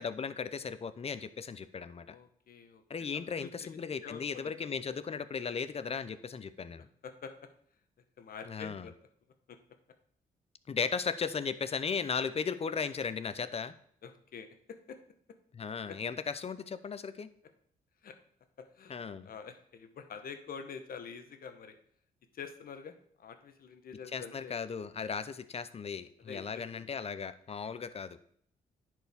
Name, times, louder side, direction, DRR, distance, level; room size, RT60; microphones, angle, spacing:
voice 1, 0.0-2.2 2.9-6.9 8.5-8.9 10.7-13.7 15.5-17.3 18.9-19.3 24.1-28.2, left 6 dB, 40° left, 13 dB, 0.6 m, -36 dB
voice 2, 2.0-4.7 6.8-7.3 8.2-8.9 9.5-9.6 14.0-15.0 15.9-16.0 18.0-18.1 18.6-18.9 19.2-21.8 22.3-24.6 26.2-26.9, left 6 dB, 65° left, 8 dB, 1.0 m, -47 dB
10.0 x 4.6 x 3.6 m, 0.64 s
cardioid pair, 65°, 16 cm